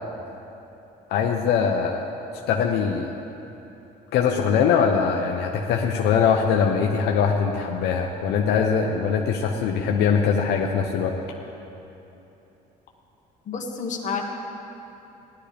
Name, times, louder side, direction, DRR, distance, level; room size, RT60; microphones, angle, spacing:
voice 1, 1.1-2.1 2.5-3.1 4.1-11.1, left 6 dB, 80° left, 1 dB, 0.8 m, -22 dB
voice 2, 13.5-14.2, left 5 dB, 45° left, 0 dB, 1.5 m, -29 dB
17.0 x 11.5 x 3.4 m, 3.0 s
cardioid pair, 110°, 17 cm